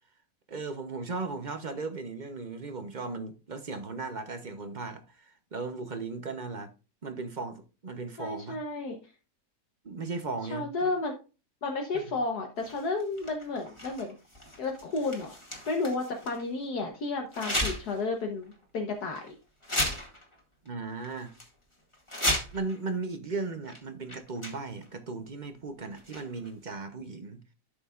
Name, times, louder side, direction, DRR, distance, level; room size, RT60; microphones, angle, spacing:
voice 1, 0.5-6.7 7.0-8.6 9.8-10.9 11.9-12.2 20.6-21.3 22.5-27.4, right 3 dB, 40° right, 0.7 m, -37 dB
voice 2, 8.2-9.1 10.5-11.2 11.6-14.2 14.6-15.4 15.7-19.3, left 3 dB, 70° left, 1.6 m, -32 dB
sound 1, 12.6-16.5 17.3-18.0 18.4-18.5 19.2-19.3 19.6-20.4 20.7-20.8 21.0-21.5 21.9-22.8 23.7-23.8 24.1-24.9 25.9-26.5, equal, 15° left, 2.0 m, -34 dB
13.0 x 6.4 x 2.4 m
omnidirectional pair, 1.8 m